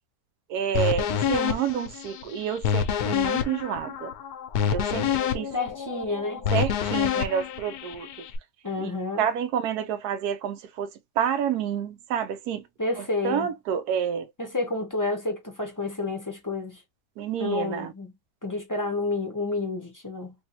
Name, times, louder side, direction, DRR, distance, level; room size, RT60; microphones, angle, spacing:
voice 1, 0.5-4.1 4.7-5.5 6.5-8.3 8.8-8.9 9.2-10.9 11.2-12.7 13.0-14.3 17.2-17.9, right 8 dB, 90° right, 1.2 m, -29 dB
sound 1, 0.7-8.4, left 8 dB, 80° left, 1.1 m, -27 dB
voice 2, 5.5-6.5 8.6-9.3 12.8-13.5 14.4-16.8 17.4-18.1 18.4-20.3, left 3 dB, 15° left, 0.7 m, -30 dB
3.3 x 2.6 x 2.8 m
omnidirectional pair, 1.6 m